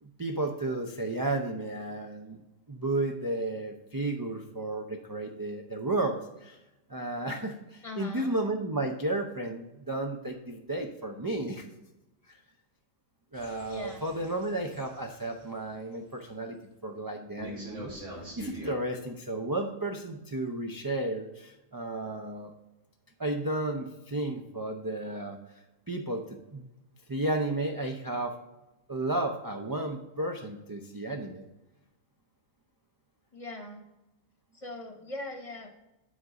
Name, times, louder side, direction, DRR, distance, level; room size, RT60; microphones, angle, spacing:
voice 1, 0.0-2.4 2.7-6.6 6.9-11.6 12.3-12.4 13.3-16.6 16.8-18.0 18.4-22.5 23.2-25.4 25.9-26.2 26.5-26.7 27.1-28.3 28.9-31.4, right 2 dB, 30° right, 2 dB, 0.4 m, -33 dB
voice 2, 7.8-8.3 13.7-14.0 33.3-33.9 34.5-35.7, left 2 dB, 30° left, 3 dB, 1.0 m, -40 dB
sound 1, 13.3-15.4 17.4-18.8, right 1 dB, 75° right, 2.6 m, -44 dB
9.5 x 3.9 x 4.8 m, 0.95 s
omnidirectional pair, 1.3 m